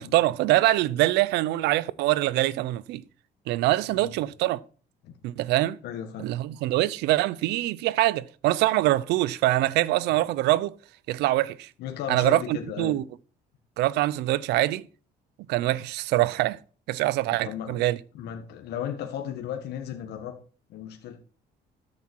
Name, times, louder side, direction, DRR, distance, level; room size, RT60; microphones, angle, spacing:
voice 1, 0.0-3.0 3.5-4.6 5.2-5.8 6.2-10.7 11.1-11.7 12.1-13.0 13.8-14.8 15.5-16.6 16.9-18.0, right 16 dB, 85° right, 0.6 m, -24 dB
voice 2, 5.8-6.3 11.8-12.9 17.4-17.8 18.1-20.3 20.7-21.2, left 9 dB, 75° left, 1.7 m, -35 dB
13.5 x 7.8 x 4.6 m
cardioid pair, 110°, 17 cm